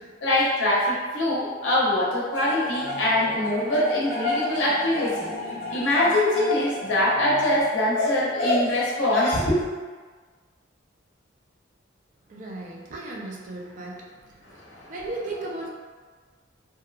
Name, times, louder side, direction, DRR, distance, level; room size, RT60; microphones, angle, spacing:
voice 1, 0.2-5.3 5.7-9.6 14.7-15.0 15.2-15.5, left 1 dB, 80° left, -5 dB, 0.6 m, -23 dB
sound 1, 2.3-7.6, left 2 dB, 45° left, 0.8 m, -32 dB
voice 2, 12.3-14.0 14.9-15.7, right 2 dB, 40° right, -2 dB, 0.4 m, -35 dB
2.8 x 2.2 x 2.3 m, 1.5 s
head